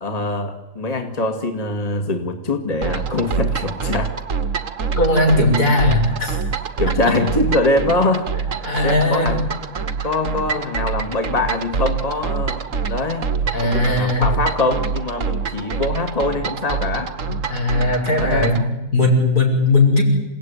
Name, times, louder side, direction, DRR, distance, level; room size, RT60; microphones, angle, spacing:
voice 1, 0.0-4.1 6.8-9.4 10.0-13.3 13.6-17.1 18.2-18.5, left 2 dB, 25° left, 6 dB, 2.2 m, -23 dB
sound 1, 2.8-18.7, right 6 dB, 55° right, 1.7 m, -25 dB
voice 2, 5.0-6.4 7.1-7.2 8.6-9.3 13.5-14.3 17.3-20.0, left 2 dB, 80° left, 1 dB, 6.5 m, -18 dB
28.5 x 17.5 x 9.7 m, 1.1 s
omnidirectional pair, 1.6 m